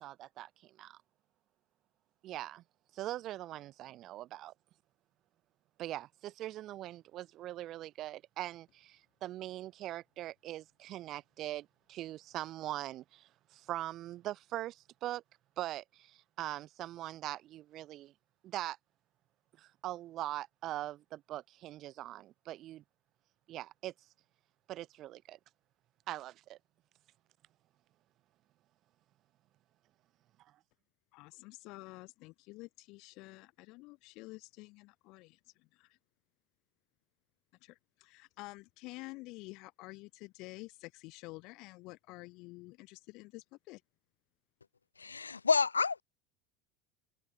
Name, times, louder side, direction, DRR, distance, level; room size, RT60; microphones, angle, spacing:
voice 1, 0.0-1.0 2.2-2.6 2.9-4.5 5.8-15.2 15.6-18.1 18.4-18.8 19.6-22.8 23.5-23.9 24.7-25.4 26.1-26.6, right 14 dB, 45° right, 0.9 m, -42 dB
voice 2, 31.1-35.4 35.8-35.9 37.6-37.7 38.0-43.8, left 23 dB, 55° left, 2.6 m, -49 dB
voice 3, 45.0-46.0, left 5 dB, 90° left, 0.4 m, -29 dB
hypercardioid pair, 80°, 0 cm